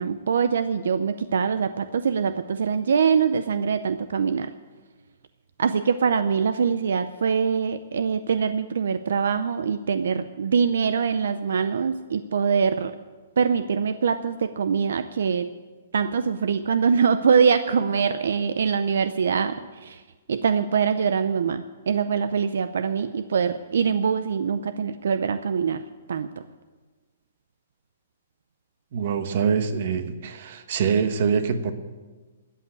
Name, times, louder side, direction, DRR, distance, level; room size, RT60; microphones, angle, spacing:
voice 1, 0.0-4.5 5.6-13.0 13.4-15.5 15.9-20.0 20.3-25.8 26.1-26.3, right 6 dB, 80° right, 12 dB, 0.5 m, -23 dB
voice 2, 28.9-31.7, right 6 dB, 50° right, 10 dB, 1.1 m, -24 dB
13.0 x 8.5 x 8.5 m, 1.3 s
hypercardioid pair, 165°, 0 cm